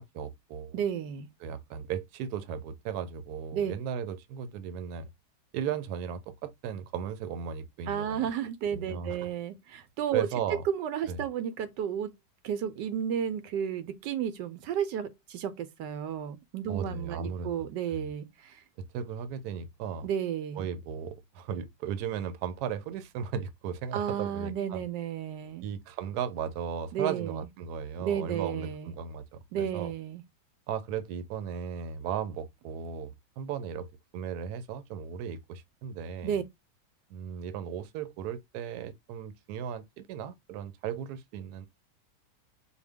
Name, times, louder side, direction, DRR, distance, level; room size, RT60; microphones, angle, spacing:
voice 1, 0.0-0.8 1.4-5.1 5.5-8.3 8.7-9.3 10.1-10.6 11.1-11.2 16.7-17.7 18.9-20.1 20.5-24.8 25.6-29.9 30.7-33.9 34.1-36.4 37.1-41.7, right 7 dB, 70° right, 1.1 m, -36 dB
voice 2, 0.7-1.3 3.5-3.7 7.9-10.3 10.6-12.1 12.4-18.6 20.0-20.7 23.9-25.7 26.9-27.5 28.0-28.9 29.5-30.2 36.2-36.4, right 9 dB, 90° right, 1.3 m, -32 dB
4.9 x 2.3 x 3.4 m
omnidirectional pair, 1.8 m